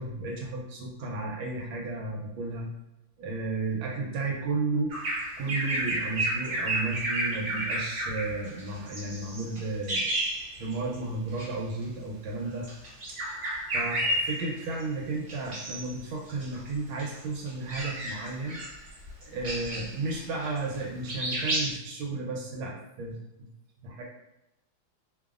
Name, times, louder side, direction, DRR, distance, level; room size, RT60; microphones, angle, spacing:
voice 1, 0.0-2.7 3.2-4.9 5.4-10.1 10.6-12.7 13.1-13.2 13.7-18.6 19.2-23.5 23.8-24.0, right 3 dB, 80° right, -2 dB, 1.4 m, -33 dB
Bird vocalization bird call bird song, 4.9-11.0 11.3-11.5 12.5-14.8 15.3-15.9 16.3-20.8 21.1-21.7, right 1 dB, 60° right, 0.8 m, -32 dB
3.3 x 2.0 x 2.3 m, 0.88 s
omnidirectional pair, 2.2 m